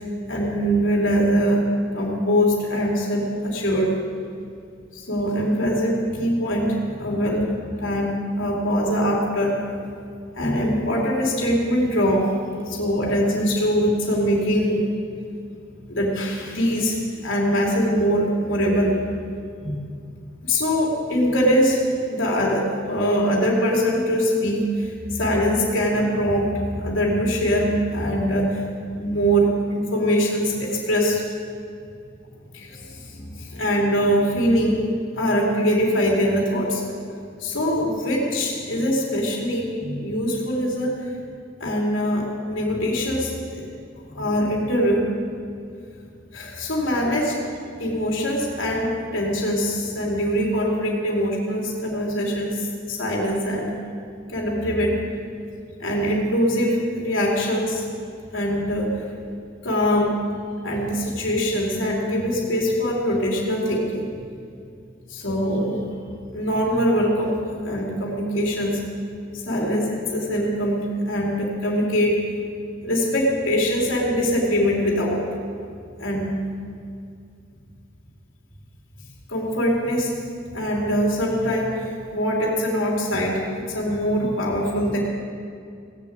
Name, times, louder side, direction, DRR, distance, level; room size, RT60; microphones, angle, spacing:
voice 1, 0.3-1.6 1.9-3.9 5.1-7.5 7.8-9.5 10.3-12.3 12.6-14.8 15.9-18.9 19.6-19.8 20.4-21.8 22.1-28.6 29.0-31.2 32.5-34.8 35.2-36.8 37.4-40.9 41.6-43.6 44.1-45.0 46.3-47.4 47.8-53.7 54.3-54.9 55.8-57.8 58.3-58.9 59.6-60.1 60.6-64.0 65.1-65.8 66.3-68.8 69.3-72.2 72.8-75.2 76.0-76.4 79.3-80.1 80.5-85.0, equal, 90° left, -3 dB, 3.1 m, -22 dB
17.5 x 7.3 x 8.8 m, 2.4 s
head